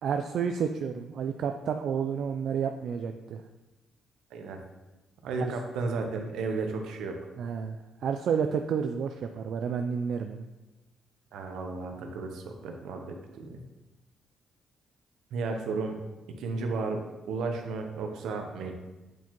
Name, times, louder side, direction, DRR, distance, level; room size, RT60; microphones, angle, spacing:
voice 1, 0.0-3.4 5.4-5.5 7.4-10.4, right 7 dB, 70° right, 6 dB, 0.3 m, -30 dB
voice 2, 5.2-7.2 11.3-13.6 15.3-16.0 16.4-17.0 17.3-18.7, right 4 dB, 85° right, 4 dB, 0.8 m, -33 dB
8.1 x 4.5 x 3.0 m, 1.1 s
cardioid pair, 90°, 0 cm